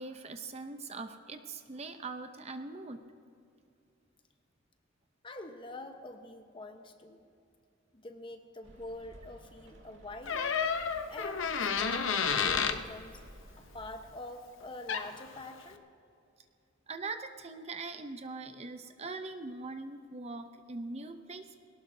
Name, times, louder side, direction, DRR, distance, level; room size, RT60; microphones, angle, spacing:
voice 1, 0.0-3.0 16.9-21.6, right 3 dB, 30° right, 8 dB, 0.6 m, -42 dB
voice 2, 5.2-7.2 7.9-10.6 11.1-13.2 13.6-15.8, left 1 dB, 25° left, 5 dB, 1.0 m, -45 dB
Rain, 8.6-14.0, equal, 70° right, 2.1 m, -54 dB
Door, 10.3-12.8 14.6-14.7 14.9-15.3, left 6 dB, 75° left, 0.8 m, -30 dB
21.5 x 18.0 x 2.7 m, 2.5 s
head